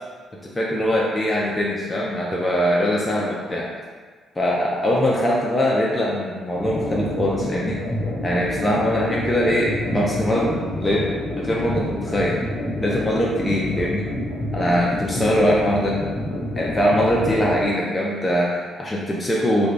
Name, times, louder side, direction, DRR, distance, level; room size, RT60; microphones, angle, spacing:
voice 1, 0.4-3.7 4.4-7.8 8.2-12.4 12.8-14.1 14.5-16.0 16.5-19.7, equal, 15° left, -4 dB, 0.4 m, -22 dB
sound 1, 6.5-17.6, left 1 dB, 35° left, 1.0 m, -28 dB
2.8 x 2.6 x 3.4 m, 1.5 s
cardioid pair, 140°, 0 cm